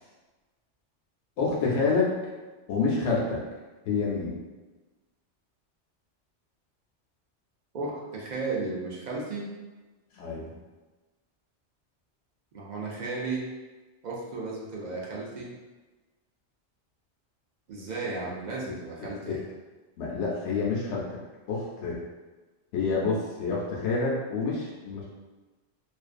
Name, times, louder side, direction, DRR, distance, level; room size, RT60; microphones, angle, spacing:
voice 1, 1.4-2.2 2.7-3.4 3.8-4.4 10.1-10.5 19.0-19.4 20.0-21.1 21.5-22.0 22.7-25.1, left 4 dB, 80° left, -4 dB, 0.9 m, -28 dB
voice 2, 7.7-9.5 12.5-13.4 14.0-15.5 17.7-19.4, right 3 dB, 60° right, -4 dB, 0.5 m, -34 dB
2.5 x 2.2 x 2.4 m, 1.2 s
omnidirectional pair, 1.2 m